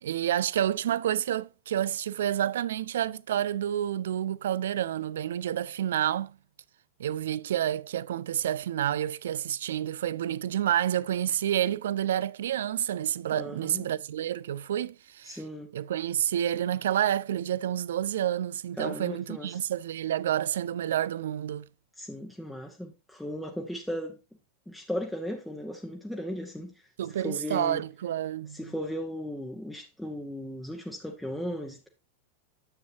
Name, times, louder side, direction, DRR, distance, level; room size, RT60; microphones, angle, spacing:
voice 1, 0.0-6.3 7.0-15.4 15.7-21.7 27.0-28.7, right 11 dB, 60° right, 0.3 m, -29 dB
voice 2, 13.3-13.8 15.2-15.7 18.8-19.6 22.0-24.2 24.7-26.7 27.1-27.8 28.5-31.9, equal, 5° left, 0.9 m, -36 dB
9.7 x 7.8 x 2.7 m
figure-of-eight pair, 90°, 0 cm